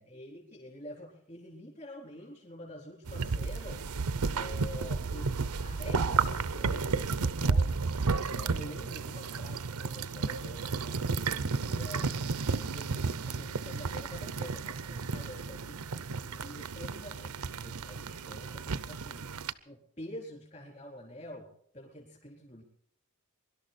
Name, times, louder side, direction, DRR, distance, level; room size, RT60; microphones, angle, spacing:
voice 1, 0.0-3.9 4.3-7.8 8.3-11.1 11.5-15.8 16.3-19.3 19.7-22.6, left 1 dB, 30° left, -1 dB, 4.1 m, -47 dB
sound 1, 3.1-19.5, right 4 dB, 90° right, 0.7 m, -32 dB
24.0 x 12.0 x 4.3 m, 0.67 s
head